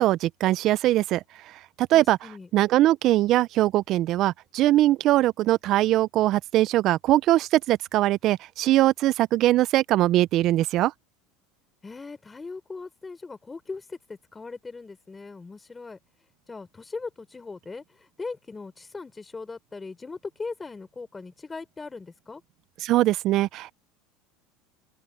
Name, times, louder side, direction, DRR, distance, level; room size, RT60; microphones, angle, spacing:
voice 1, 0.0-2.2 2.5-10.9 22.8-23.7, right 15 dB, 50° right, 0.3 m, -22 dB
voice 2, 1.9-2.5 11.8-16.0 16.5-22.4, left 4 dB, 15° left, 4.1 m, -39 dB
open air
supercardioid pair, 125°, 0 cm